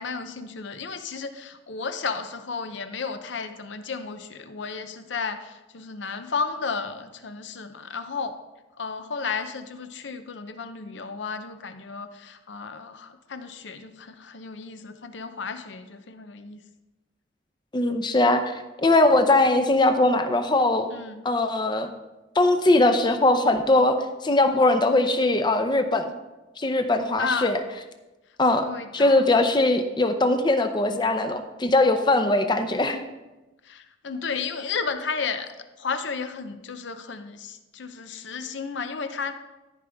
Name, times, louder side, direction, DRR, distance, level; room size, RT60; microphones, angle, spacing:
voice 1, 0.0-8.4 8.8-16.6 20.9-21.2 27.2-27.5 28.6-29.3 33.6-35.5 35.8-39.3, left 5 dB, 70° left, 9 dB, 0.7 m, -33 dB
voice 2, 17.7-18.5 18.8-20.9 21.2-21.9 22.4-24.0 24.2-26.1 26.6-27.6 28.4-33.0, left 2 dB, 25° left, 7 dB, 0.6 m, -21 dB
14.0 x 5.2 x 3.5 m, 1.1 s
head